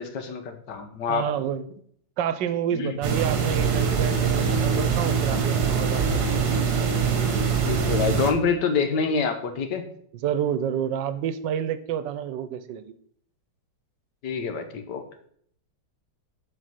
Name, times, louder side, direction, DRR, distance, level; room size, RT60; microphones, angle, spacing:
voice 1, 0.0-1.3 2.7-3.0 7.6-9.8 14.2-15.0, left 5 dB, 75° left, 7 dB, 1.7 m, -26 dB
voice 2, 1.1-1.8 2.2-6.2 10.2-12.9, right 9 dB, 85° right, 13 dB, 1.4 m, -29 dB
sound 1, 3.0-8.3, right 6 dB, 65° right, 1.8 m, -23 dB
8.0 x 5.0 x 5.8 m, 0.62 s
omnidirectional pair, 1.9 m